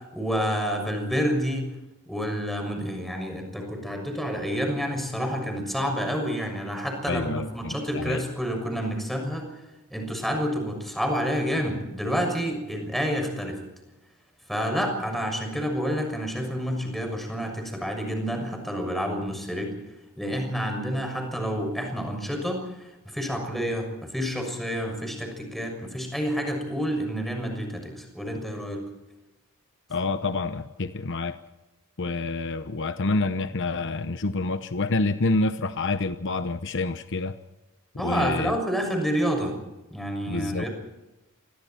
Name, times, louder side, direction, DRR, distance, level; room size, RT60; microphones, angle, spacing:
voice 1, 0.1-1.7 2.1-9.6 9.9-13.7 14.5-19.8 20.2-28.8 38.0-39.6 39.9-40.7, equal, ahead, 6.5 m, -29 dB
voice 2, 7.1-8.2 29.9-31.4 32.0-37.3 38.0-38.5 40.3-40.7, left 3 dB, 55° left, 0.9 m, -27 dB
27.0 x 22.5 x 4.4 m
head